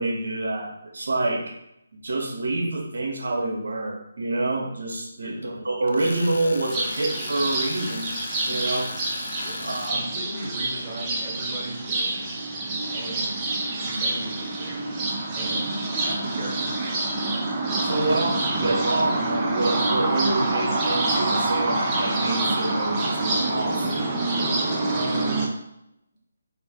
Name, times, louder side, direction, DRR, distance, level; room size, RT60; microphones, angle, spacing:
voice 1, 0.0-1.5 2.0-8.1 8.4-9.0 9.6-10.0 17.8-23.9, right 2 dB, 70° right, 0 dB, 0.8 m, -27 dB
Tools, 5.9-9.9, left 3 dB, 65° left, 0.3 m, -37 dB
sound 1, 6.7-25.5, right 2 dB, 20° right, 0.5 m, -26 dB
voice 2, 9.9-12.3 12.9-13.6 13.9-14.8 15.4-17.1 17.9-18.4 24.9-25.5, right 1 dB, 35° right, -4 dB, 1.0 m, -37 dB
2.5 x 2.4 x 3.6 m, 0.82 s
figure-of-eight pair, 155°, 0 cm